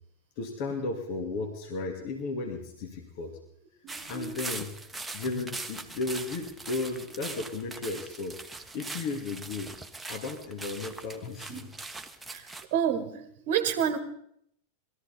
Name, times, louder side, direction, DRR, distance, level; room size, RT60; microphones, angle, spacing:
voice 1, 0.4-3.4 4.1-4.8 5.1-8.4 8.7-9.8 10.1-11.7, left 3 dB, 45° left, 3 dB, 2.2 m, -34 dB
voice 2, 3.8-4.4 11.5-11.7 12.3-12.5 12.7-14.0, right 8 dB, 45° right, 10 dB, 1.4 m, -29 dB
sound 1, 3.9-12.7, right 3 dB, 5° right, 1.3 m, -41 dB
20.5 x 14.0 x 4.2 m, 0.70 s
figure-of-eight pair, 90°, 0 cm